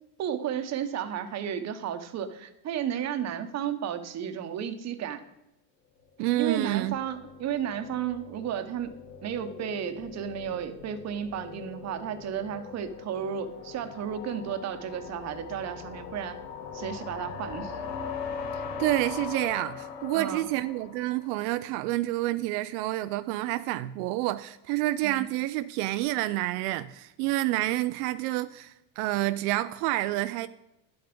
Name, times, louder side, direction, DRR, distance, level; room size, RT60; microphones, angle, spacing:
voice 1, 0.2-5.2 6.4-8.9 9.2-16.4 16.7-17.8 20.1-20.5 25.0-25.2, right 9 dB, 35° right, 1.0 m, -33 dB
voice 2, 6.2-7.0 18.5-30.5, right 16 dB, 75° right, 0.6 m, -28 dB
sound 1, 6.3-21.5, left 6 dB, 90° left, 2.1 m, -41 dB
11.0 x 8.0 x 5.2 m
cardioid pair, 140°, 46 cm